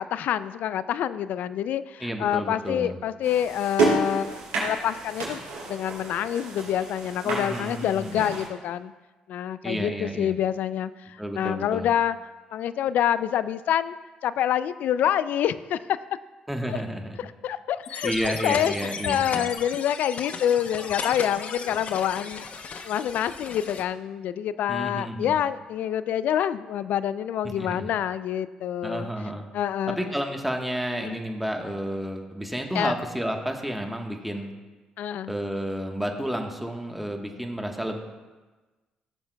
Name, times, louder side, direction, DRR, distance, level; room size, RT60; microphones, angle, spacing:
voice 1, 0.0-5.4 5.7-8.9 9.3-12.2 12.5-14.0 14.2-15.8 16.7-16.8 17.2-22.5 22.8-29.1 29.5-30.1 31.0-31.2 32.7-32.9 35.0-35.3, left 10 dB, 70° left, 15 dB, 0.3 m, -27 dB
voice 2, 2.0-2.9 7.2-8.2 9.6-10.3 11.2-11.9 16.5-17.2 18.0-19.5 24.7-25.4 27.5-27.9 28.8-29.5 29.9-34.5 35.3-38.0, equal, 5° right, 3 dB, 1.2 m, -31 dB
sound 1, 3.2-8.5, right 4 dB, 90° right, 3.1 m, -30 dB
sound 2, 17.8-23.8, left 5 dB, 55° left, 0.8 m, -35 dB
16.0 x 7.1 x 2.3 m, 1.2 s
supercardioid pair, 60°, 3 cm